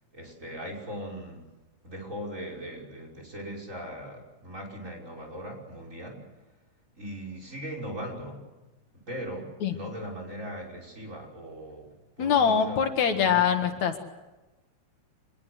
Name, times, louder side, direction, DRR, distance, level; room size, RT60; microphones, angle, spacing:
voice 1, 0.1-1.5 1.8-6.2 6.9-8.5 9.1-13.8, equal, 25° right, 2 dB, 6.0 m, -39 dB
voice 2, 12.2-14.1, left 7 dB, 75° left, 6 dB, 3.1 m, -23 dB
26.0 x 21.5 x 8.0 m, 1.1 s
omnidirectional pair, 3.3 m